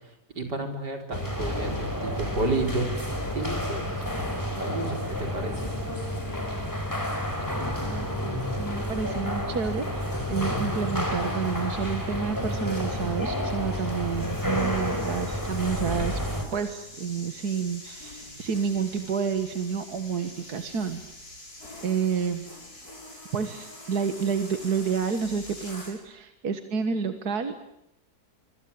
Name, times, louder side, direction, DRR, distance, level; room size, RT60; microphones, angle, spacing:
voice 1, 0.4-3.1 3.3-5.7, right 2 dB, 90° right, 3 dB, 5.2 m, -31 dB
sound 1, 1.1-16.4, left 1 dB, 10° left, 4.6 m, -30 dB
voice 2, 7.8-16.2 16.5-21.0 21.8-22.5 23.3-27.7, right 6 dB, 70° right, 8 dB, 2.1 m, -29 dB
sound 2, 14.0-26.0, left 1 dB, 65° left, 7.4 m, -43 dB
25.5 x 25.5 x 8.6 m, 0.81 s
omnidirectional pair, 1.8 m